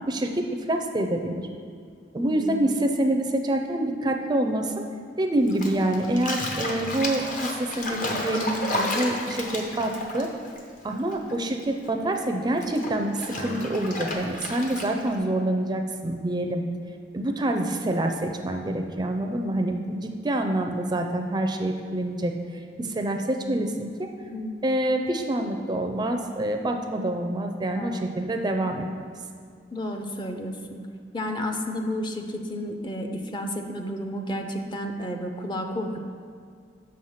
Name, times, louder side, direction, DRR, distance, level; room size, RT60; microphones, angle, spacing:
voice 1, 0.1-1.5 2.1-4.8 5.2-10.3 10.8-16.6 17.1-22.3 22.8-24.1 24.6-29.1, right 1 dB, 25° right, 4 dB, 0.4 m, -26 dB
voice 2, 2.2-2.8 24.3-24.6 27.7-28.1 29.7-30.8 31.1-36.0, equal, 25° left, 4 dB, 0.6 m, -32 dB
Bathtub (filling or washing), 5.5-11.3 11.6-15.2, left 1 dB, 50° left, 0.9 m, -32 dB
6.2 x 5.7 x 6.3 m, 2.1 s
head